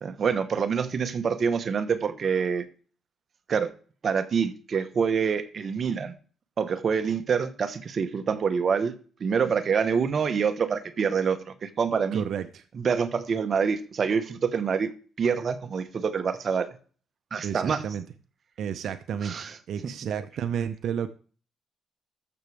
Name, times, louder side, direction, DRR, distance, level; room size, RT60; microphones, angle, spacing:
voice 1, 0.0-2.7 3.5-3.7 4.0-6.1 6.6-8.9 9.2-12.2 12.7-14.9 15.2-16.7 17.3-17.8 19.2-19.6, right 6 dB, 50° right, 10 dB, 1.1 m, -26 dB
voice 2, 12.1-12.6 17.4-18.0 18.6-21.1, right 8 dB, 70° right, 10 dB, 0.6 m, -31 dB
14.0 x 6.1 x 3.4 m, 0.40 s
cardioid pair, 90°, 0 cm